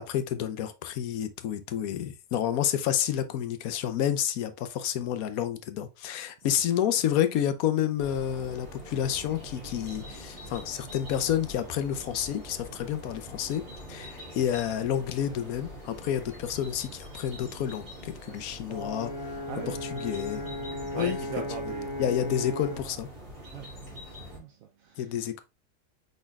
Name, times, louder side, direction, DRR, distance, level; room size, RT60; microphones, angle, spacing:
voice 1, 0.0-13.6 13.9-20.4 20.9-21.2 21.7-21.8 22.0-23.1 25.0-25.4, left 10 dB, 80° left, 1.1 m, -29 dB
sound 1, 8.0-24.4, equal, 40° right, 2.7 m, -44 dB
Brass instrument, 18.7-22.9, left 1 dB, 15° right, 2.6 m, -36 dB
voice 2, 19.5-22.4 22.7-23.0 23.5-25.2, right 7 dB, 70° right, 1.0 m, -42 dB
5.1 x 4.1 x 2.3 m
omnidirectional pair, 1.6 m